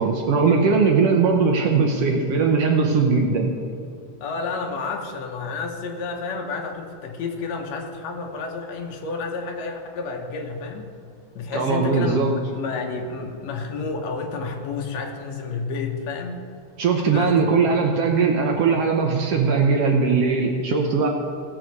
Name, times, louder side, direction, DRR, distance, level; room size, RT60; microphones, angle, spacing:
voice 1, 0.0-3.5 11.5-12.3 16.8-21.1, right 4 dB, 70° right, 1 dB, 1.6 m, -20 dB
voice 2, 4.2-10.9 11.4-12.2 12.5-16.4 17.1-17.3, left 4 dB, 65° left, 2 dB, 2.2 m, -30 dB
17.0 x 6.3 x 4.7 m, 2.4 s
omnidirectional pair, 3.5 m